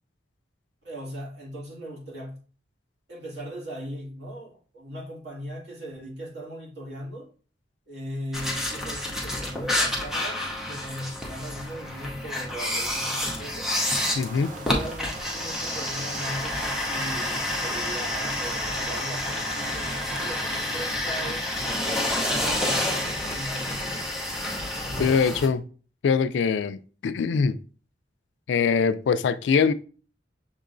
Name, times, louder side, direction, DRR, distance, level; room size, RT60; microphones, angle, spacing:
voice 1, 0.8-2.4 3.1-7.3 7.9-13.7 14.3-16.6 16.9-21.5 21.8-23.8, equal, 70° right, 2.0 m, -38 dB
sound 1, 8.3-25.5, left 1 dB, 5° right, 0.7 m, -29 dB
sound 2, 13.7-20.3, right 3 dB, 45° right, 0.6 m, -41 dB
voice 2, 14.2-14.5 25.0-25.6 26.0-27.6 28.5-29.7, left 5 dB, 80° left, 0.3 m, -23 dB
6.4 x 2.9 x 2.5 m
head